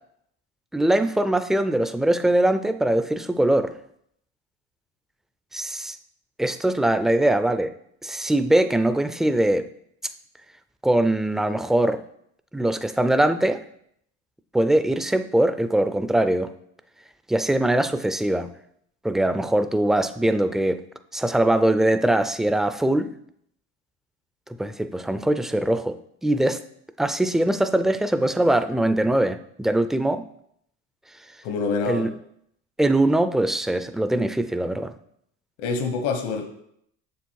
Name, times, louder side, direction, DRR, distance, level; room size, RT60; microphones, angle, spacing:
voice 1, 0.7-3.7 5.5-6.0 6.4-7.7 8.0-9.7 10.8-12.0 12.5-13.6 14.5-16.5 17.3-18.5 19.0-20.8 21.1-23.1 24.6-26.6 27.0-30.2 31.9-32.1 32.8-34.9, right 1 dB, ahead, 10 dB, 0.3 m, -22 dB
voice 2, 31.4-32.1 35.6-36.5, left 4 dB, 80° left, 6 dB, 1.2 m, -26 dB
7.0 x 6.8 x 4.6 m, 0.71 s
cardioid pair, 125°, 29 cm